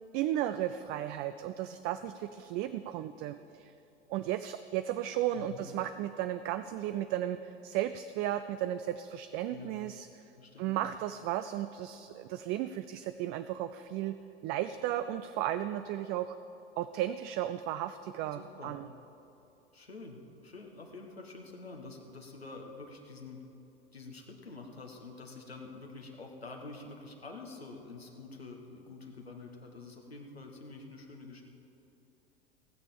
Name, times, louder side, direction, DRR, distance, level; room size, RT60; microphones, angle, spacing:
voice 1, 0.1-3.7 4.1-10.1 10.6-14.2 14.4-16.4 16.8-18.9, right 12 dB, 35° right, 11 dB, 0.4 m, -34 dB
voice 2, 5.3-5.7 9.5-9.8 10.4-10.9 18.3-18.8 19.7-23.4 23.9-31.4, left 3 dB, 85° left, 1 dB, 1.5 m, -47 dB
17.0 x 6.8 x 7.5 m, 2.8 s
figure-of-eight pair, 80°, 30 cm